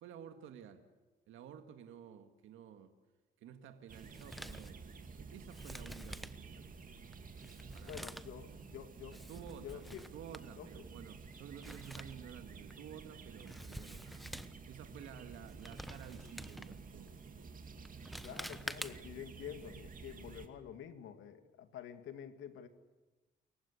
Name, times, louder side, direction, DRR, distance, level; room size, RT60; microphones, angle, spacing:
voice 1, 0.0-0.8 1.3-2.9 3.4-4.8 5.2-6.9 7.7-8.1 9.3-9.8 10.1-14.0 14.7-17.5, right 8 dB, 90° right, 7 dB, 1.8 m, -52 dB
Male speech man speaking, 3.9-19.2, equal, ahead, 1.1 m, -50 dB
sound 1, 3.9-20.5, right 5 dB, 45° right, 2.7 m, -52 dB
voice 2, 7.8-9.2 9.6-10.1 10.6-10.7 18.2-22.7, left 9 dB, 85° left, 8 dB, 2.3 m, -48 dB
28.5 x 15.5 x 9.9 m, 1.2 s
cardioid pair, 90°, 20 cm